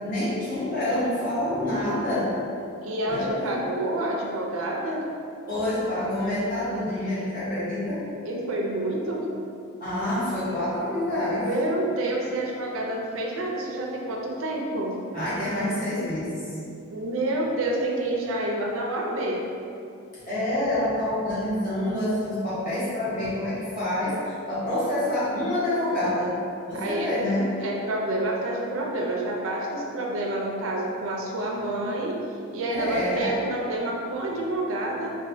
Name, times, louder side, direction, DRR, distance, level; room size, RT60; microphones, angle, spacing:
voice 1, 0.0-2.3 3.1-3.5 5.5-8.0 9.8-11.5 15.1-16.5 20.3-26.3 26.7-27.5 32.7-33.4, left 1 dB, 40° left, -11 dB, 1.1 m, -27 dB
voice 2, 2.8-5.1 8.2-9.3 11.4-15.0 16.9-19.5 26.7-27.1 27.6-32.2 32.5-35.2, right 1 dB, 65° right, -1 dB, 0.4 m, -28 dB
4.1 x 2.2 x 2.6 m, 2.6 s
head